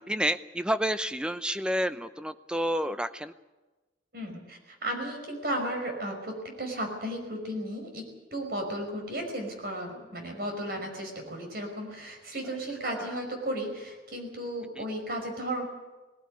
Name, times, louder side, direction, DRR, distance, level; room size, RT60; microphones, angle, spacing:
voice 1, 0.0-3.3 12.8-13.2 14.8-14.9, equal, 5° right, 11 dB, 0.7 m, -30 dB
voice 2, 4.1-15.7, right 1 dB, 55° right, 4 dB, 5.5 m, -34 dB
19.5 x 16.5 x 9.6 m, 1.2 s
head